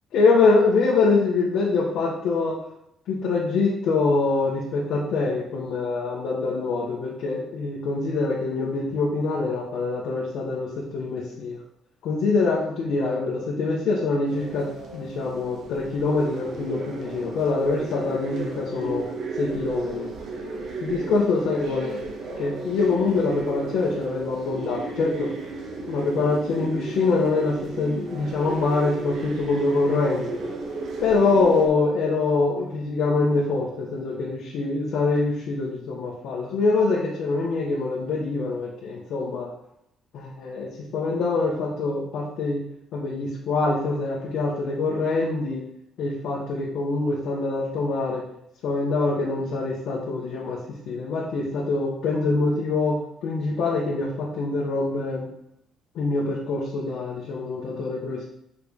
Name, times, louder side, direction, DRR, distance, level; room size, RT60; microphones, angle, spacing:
voice 1, 0.1-2.6 3.1-11.6 12.0-14.7 14.9-19.1 19.4-20.1 20.8-21.9 22.4-25.3 25.9-30.3 31.0-39.5 40.1-42.6 42.9-45.6 46.0-48.2 48.6-50.6 50.8-55.3 55.9-58.2, left 3 dB, 75° left, -5 dB, 1.7 m, -24 dB
sound 1, 14.3-31.7, right 3 dB, 70° right, 1.7 m, -34 dB
5.7 x 5.3 x 5.5 m, 0.74 s
cardioid pair, 155°, 0 cm